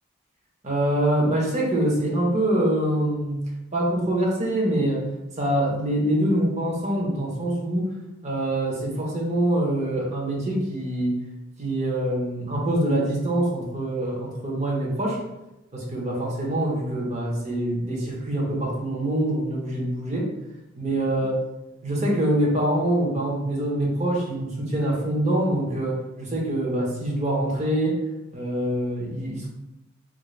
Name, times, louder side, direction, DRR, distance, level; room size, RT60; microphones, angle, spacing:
voice 1, 0.6-3.4 3.7-5.0 5.4-7.9 8.2-11.1 11.6-15.2 15.7-20.3 20.8-21.3 21.8-28.0 28.3-29.5, right 1 dB, 35° right, -3 dB, 0.8 m, -25 dB
3.7 x 2.1 x 3.1 m, 0.95 s
head